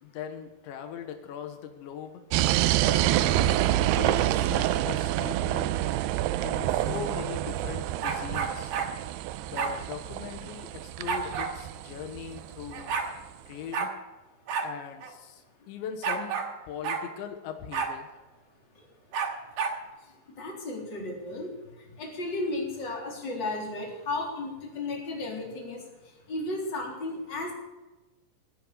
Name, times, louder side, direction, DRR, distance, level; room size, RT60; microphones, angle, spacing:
voice 1, 0.0-2.2 2.8-5.8 6.4-8.8 9.5-13.0 13.5-13.9 14.6-18.1, left 8 dB, 85° left, 7 dB, 3.5 m, -40 dB
sound 1, 2.3-13.0, right 13 dB, 80° right, 2.4 m, -27 dB
sound 2, 8.0-8.9 9.6-9.8 11.1-11.5 12.4-12.5 12.7-13.1 13.7-13.9 14.5-14.7 15.0-15.1 16.0-16.5 16.8-17.0 17.7-17.9 19.1-19.8, right 6 dB, 65° right, 3.8 m, -30 dB
voice 2, 20.4-21.5 22.0-25.8 26.3-27.5, left 2 dB, 25° left, 0 dB, 4.0 m, -34 dB
18.0 x 9.8 x 6.8 m, 1.1 s
omnidirectional pair, 5.1 m